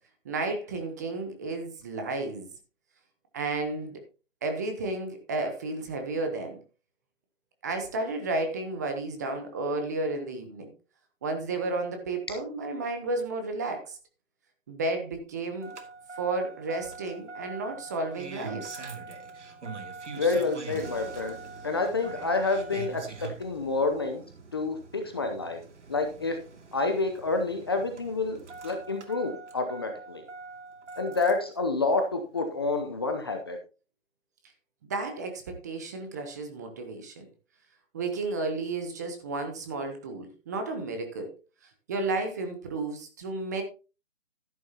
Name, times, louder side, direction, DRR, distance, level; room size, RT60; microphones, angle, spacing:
voice 1, 0.2-2.5 3.3-4.0 4.4-6.6 7.6-10.7 11.2-14.0 14.7-15.7 16.2-18.7 34.9-37.2 37.9-41.3 41.9-43.6, right 3 dB, 15° right, 6 dB, 0.9 m, -32 dB
Engine starting, 15.6-31.5 32.8-32.9, right 4 dB, 65° right, 2.5 m, -43 dB
voice 2, 20.1-21.3 21.6-24.2 24.5-25.6 25.9-26.4 26.7-30.2 31.0-33.6, left 3 dB, 20° left, 5 dB, 0.7 m, -28 dB
12.5 x 10.5 x 2.8 m, 0.33 s
hypercardioid pair, 160°, 38 cm